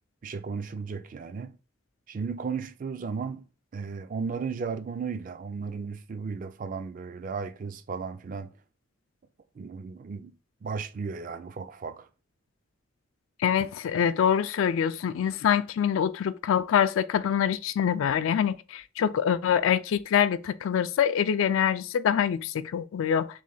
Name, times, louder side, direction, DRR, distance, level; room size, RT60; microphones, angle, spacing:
voice 1, 0.2-1.6 2.1-3.5 3.7-8.5 9.6-10.3 10.6-12.1, right 5 dB, 40° right, 0.3 m, -35 dB
voice 2, 13.4-23.3, left 8 dB, 80° left, 0.3 m, -25 dB
3.3 x 3.2 x 3.8 m
head